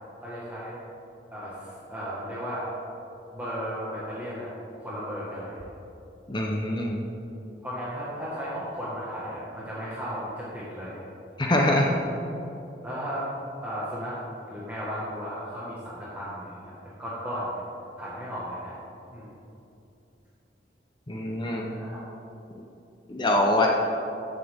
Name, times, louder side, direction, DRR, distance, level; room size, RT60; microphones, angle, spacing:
voice 1, 0.2-0.8 1.3-2.7 3.3-4.5 4.8-5.7 6.6-6.8 7.6-11.0 12.8-14.2 14.5-17.6 18.0-18.8 19.1-19.4 21.7-22.0 23.6-23.7, equal, 10° right, -9 dB, 1.7 m, -35 dB
voice 2, 6.3-7.0 11.4-11.9 21.1-21.6 23.1-23.7, left 1 dB, 25° left, -1 dB, 0.8 m, -24 dB
15.0 x 7.6 x 3.7 m, 2.8 s
head